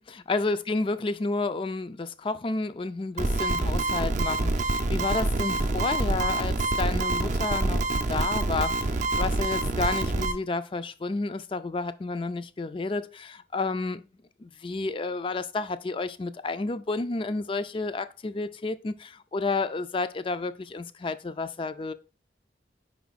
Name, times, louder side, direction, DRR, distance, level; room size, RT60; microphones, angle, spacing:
voice 1, 0.3-14.1 14.4-21.9, left 3 dB, 30° left, 0.4 m, -31 dB
sound 1, 3.2-10.3, right 2 dB, 45° right, 0.5 m, -26 dB
5.2 x 4.6 x 4.0 m
head